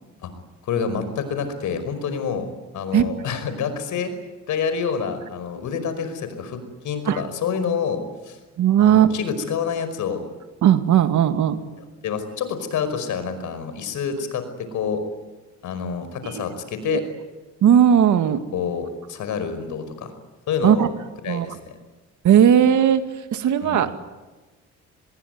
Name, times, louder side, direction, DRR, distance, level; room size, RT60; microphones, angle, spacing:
voice 1, 0.6-2.5 2.7-4.1 4.5-6.6 6.8-8.4 8.8-10.3 12.0-15.0 15.6-17.0 18.5-20.1 20.5-20.9 21.2-21.7 23.6-24.0, left 6 dB, 75° left, 10 dB, 5.3 m, -27 dB
voice 2, 8.6-9.1 10.6-11.6 16.2-16.4 16.8-17.0 17.6-18.4 20.6-20.9 21.3-21.5 22.2-24.0, right 9 dB, 75° right, 9 dB, 2.2 m, -17 dB
26.0 x 21.0 x 9.6 m, 1.2 s
cardioid pair, 90°, 30 cm